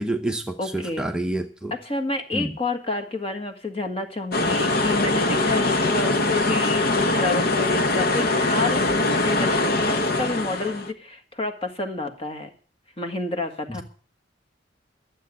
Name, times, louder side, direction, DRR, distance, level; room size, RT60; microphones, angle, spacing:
voice 1, 0.0-1.7 2.3-2.5 13.7-13.8, right 1 dB, 5° right, 2 dB, 0.8 m, -28 dB
voice 2, 0.6-1.1 1.7-8.8 9.2-12.5 13.0-13.8, left 2 dB, 30° left, 5 dB, 1.8 m, -29 dB
sound 1, 4.3-10.9, left 2 dB, 55° left, 1.0 m, -22 dB
12.0 x 7.6 x 8.7 m, 0.42 s
head